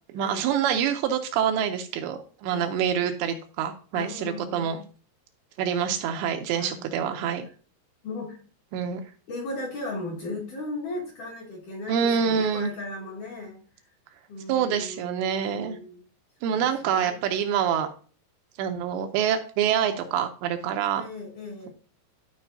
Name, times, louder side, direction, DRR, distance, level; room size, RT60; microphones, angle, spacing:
voice 1, 0.1-4.8 5.6-7.5 8.7-9.0 11.9-12.7 14.5-15.8 16.4-17.9 18.6-21.1, right 8 dB, 80° right, 6 dB, 2.9 m, -26 dB
voice 2, 2.5-3.1 3.9-4.7 5.9-6.0 6.5-7.3 8.0-8.4 9.3-13.6 14.3-16.0 16.5-17.1 20.9-21.7, left 2 dB, 55° left, -1 dB, 2.7 m, -37 dB
13.5 x 5.0 x 2.7 m, 0.40 s
omnidirectional pair, 5.2 m